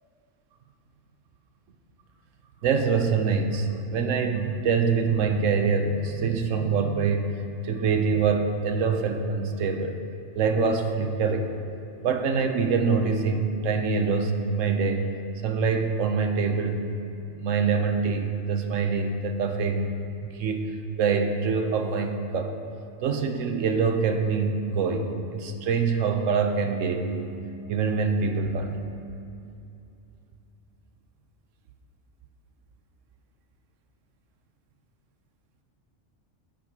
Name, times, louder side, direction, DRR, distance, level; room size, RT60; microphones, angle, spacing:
voice 1, 2.6-7.4 7.6-10.0 10.3-11.5 12.0-15.1 15.4-16.9 17.4-19.9 20.2-22.5 23.0-27.3 27.7-28.7, right 5 dB, 90° right, 5 dB, 1.1 m, -25 dB
10.5 x 8.6 x 2.8 m, 2.7 s
omnidirectional pair, 1.3 m